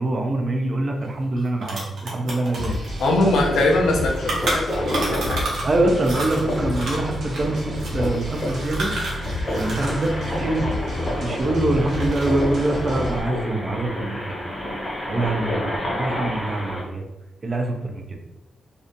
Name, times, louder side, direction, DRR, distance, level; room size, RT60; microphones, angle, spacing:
voice 1, 0.0-2.8 3.2-3.4 5.6-8.9 9.6-10.7 11.2-14.4 15.1-15.7 15.9-17.0 17.4-18.2, right 2 dB, 30° right, 3 dB, 0.3 m, -24 dB
sound 1, 1.0-1.1 1.3-5.7 6.0-10.1 10.3-11.5 11.8-12.4, right 2 dB, 90° right, 0.8 m, -30 dB
sound 2, 2.5-13.2, left 1 dB, 60° right, 0.9 m, -31 dB
voice 2, 3.0-5.5, left 2 dB, 85° left, 0 dB, 0.5 m, -22 dB
sound 3, 3.5-16.8, equal, 20° left, 0.5 m, -30 dB
2.5 x 2.1 x 2.5 m, 0.92 s
wide cardioid pair, 175°, 0 cm